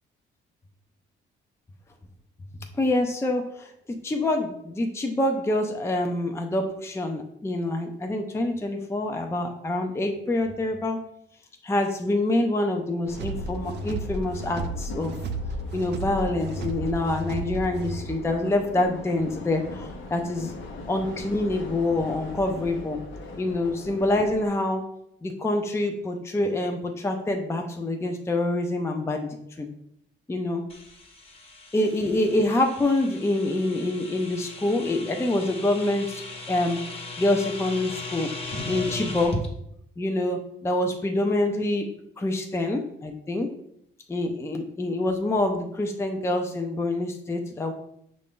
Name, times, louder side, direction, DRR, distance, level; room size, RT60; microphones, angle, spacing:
voice 1, 2.8-3.7 4.0-11.0 11.6-15.1 15.7-20.5 20.9-23.0 23.4-24.8 25.2-29.7 30.3-30.6 31.7-36.2 36.5-38.3 38.7-39.4 40.0-41.8 42.2-43.5 44.1-47.7, left 1 dB, 15° left, 3 dB, 0.5 m, -26 dB
sound 1, 13.0-24.5, left 3 dB, 75° left, 0.8 m, -40 dB
sound 2, 13.2-18.2, right 2 dB, 60° right, 0.5 m, -33 dB
sound 3, 30.7-39.5, left 2 dB, 30° left, 1.1 m, -37 dB
5.6 x 2.6 x 3.6 m, 0.74 s
cardioid pair, 90°, 20 cm